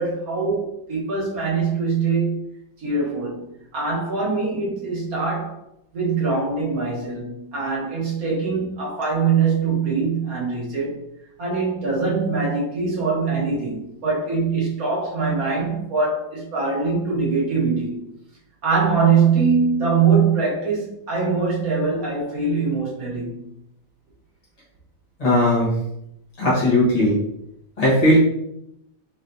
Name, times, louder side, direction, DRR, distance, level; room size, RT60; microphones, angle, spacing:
voice 1, 0.0-2.5 2.8-3.4 3.7-5.6 5.9-10.9 11.4-18.0 18.6-23.4, right 5 dB, 50° right, -5 dB, 1.4 m, -22 dB
voice 2, 25.2-25.7 26.4-27.1 27.8-28.2, left 1 dB, 35° left, -7 dB, 0.6 m, -17 dB
3.9 x 3.2 x 2.7 m, 0.80 s
omnidirectional pair, 2.3 m